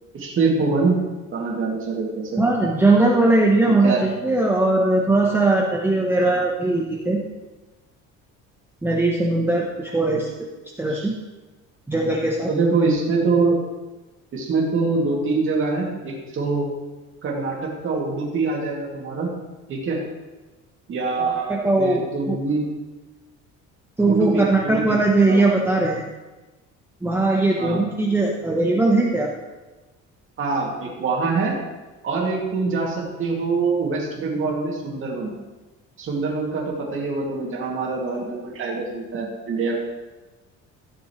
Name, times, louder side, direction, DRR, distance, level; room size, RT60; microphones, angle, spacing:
voice 1, 0.1-1.0 1.3-2.4 3.7-4.0 10.9-11.1 12.5-13.6 14.3-16.7 17.2-19.3 19.7-20.0 20.9-22.7 24.1-25.0 25.3-25.4 27.6-27.8 30.4-31.6 32.0-35.3 36.0-39.8, right 4 dB, 40° right, -2 dB, 2.3 m, -24 dB
voice 2, 2.4-7.2 8.8-10.3 10.8-11.1 11.9-12.5 21.5-22.0 22.3-22.4 24.0-26.0 27.0-29.3, right 2 dB, 5° right, -3 dB, 0.8 m, -19 dB
14.5 x 6.9 x 3.1 m, 1.2 s
cardioid pair, 150°, 31 cm